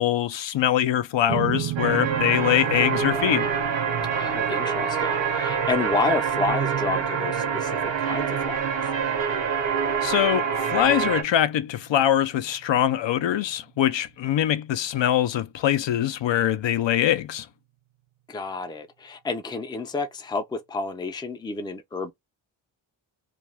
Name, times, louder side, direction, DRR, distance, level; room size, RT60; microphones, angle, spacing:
voice 1, 0.0-3.5 10.0-17.5, left 11 dB, 65° left, 0.5 m, -23 dB
sound 1, 1.3-13.8, right 14 dB, 80° right, 0.5 m, -37 dB
sound 2, 1.8-11.2, right 7 dB, 65° right, 0.9 m, -26 dB
voice 2, 4.1-8.9 18.3-22.1, left 3 dB, 10° left, 0.4 m, -30 dB
2.5 x 2.3 x 3.2 m
cardioid pair, 85°, 48 cm